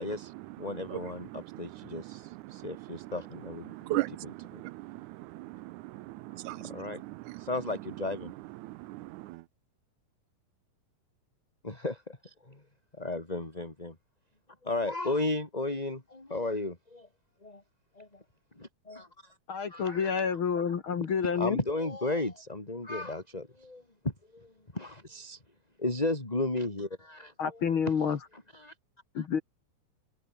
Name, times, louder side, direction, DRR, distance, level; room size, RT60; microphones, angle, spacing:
voice 1, 0.0-4.6 6.3-7.0 7.4-8.3 11.6-12.6 12.9-14.0 14.6-17.1 17.4-17.6 17.9-18.2 18.5-19.4 19.7-20.3 20.6-20.8 21.4-25.4 25.8-28.0 28.3-28.7 29.2-29.3, left 2 dB, 10° left, 3.5 m, -35 dB
voice 2, 3.7-4.1 4.5-6.8 8.6-9.4, right 19 dB, 80° right, 1.9 m, -37 dB
voice 3, 19.5-21.6 27.4-28.2 29.1-29.4, left 6 dB, 45° left, 2.2 m, -29 dB
omnidirectional pair, 3.6 m